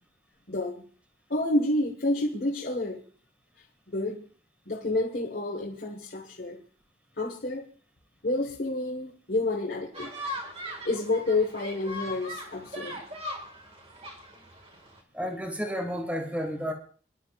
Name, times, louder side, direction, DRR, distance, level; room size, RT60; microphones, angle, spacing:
voice 1, 0.5-0.8 1.3-3.0 3.9-4.3 4.7-6.6 7.2-7.7 8.2-10.1 10.6-13.0, left 2 dB, 60° left, -2 dB, 1.5 m, -29 dB
sound 1, 9.9-15.0, left 1 dB, 35° right, 2.0 m, -40 dB
voice 2, 15.1-16.7, equal, 10° right, 2 dB, 2.0 m, -31 dB
29.5 x 11.0 x 2.5 m, 0.43 s
head